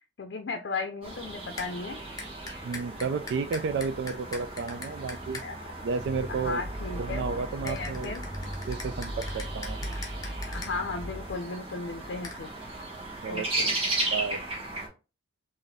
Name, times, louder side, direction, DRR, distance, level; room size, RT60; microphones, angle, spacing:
voice 1, 0.2-2.0 5.4-5.5 6.3-7.2 7.6-8.3 10.4-12.5 13.3-13.8, left 3 dB, 80° left, 5 dB, 0.5 m, -35 dB
sound 1, 1.0-14.9, right 2 dB, 35° right, 1.2 m, -36 dB
sound 2, 1.6-1.7 2.2-5.5 7.7-10.7 12.2-12.4, left 3 dB, 20° left, 0.7 m, -41 dB
voice 2, 2.6-5.4 5.8-6.6 6.9-8.1 8.7-9.9 13.2-13.7 14.1-14.4, right 5 dB, 80° right, 9 dB, 0.3 m, -32 dB
sound 3, 6.0-11.3, equal, 15° right, 0.8 m, -38 dB
4.0 x 2.6 x 3.3 m, 0.32 s
head